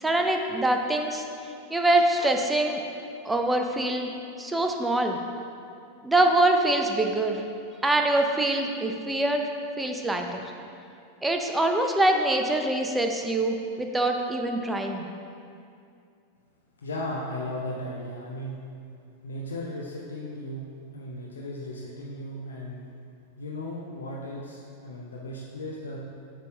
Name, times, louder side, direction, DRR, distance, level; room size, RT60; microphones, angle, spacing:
voice 1, 0.0-1.2 1.7-2.8 3.2-4.1 4.4-5.2 6.0-7.4 7.8-9.5 9.8-10.4 11.2-15.0, right 1 dB, 10° right, 3 dB, 0.6 m, -24 dB
voice 2, 16.8-18.6 19.2-20.7 20.9-22.9 23.4-26.0, left 1 dB, 70° left, -3 dB, 0.7 m, -36 dB
8.2 x 3.4 x 5.4 m, 2.4 s
figure-of-eight pair, 90°, 0 cm